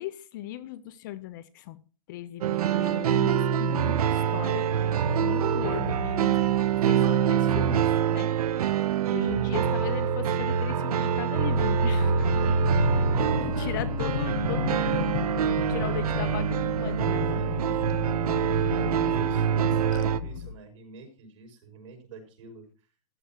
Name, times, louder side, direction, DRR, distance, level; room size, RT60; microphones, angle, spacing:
voice 1, 0.0-1.8 2.1-8.3 9.1-12.3 13.4-15.2 15.4-18.1 19.9-20.0, left 13 dB, 35° left, 13 dB, 0.8 m, -38 dB
sound 1, 2.4-20.2, right 8 dB, 85° right, 1.0 m, -25 dB
sound 2, 11.4-20.5, left 8 dB, 55° left, 1.3 m, -33 dB
voice 2, 12.2-12.7 13.4-13.5 16.7-17.7 18.7-22.7, right 4 dB, 60° right, 4 dB, 6.2 m, -45 dB
15.0 x 12.0 x 3.0 m, 0.35 s
supercardioid pair, 175°, 19 cm